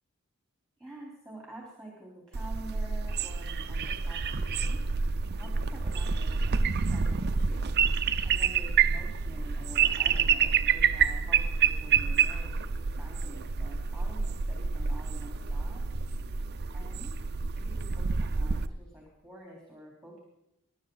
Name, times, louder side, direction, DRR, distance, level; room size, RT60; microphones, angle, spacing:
voice 1, 0.8-7.7 8.2-15.8 16.7-17.3 17.6-20.2, right 1 dB, 5° left, -3 dB, 3.8 m, -48 dB
sound 1, 2.3-18.7, right 6 dB, 50° right, 0.6 m, -28 dB
25.0 x 12.0 x 4.0 m, 0.83 s
head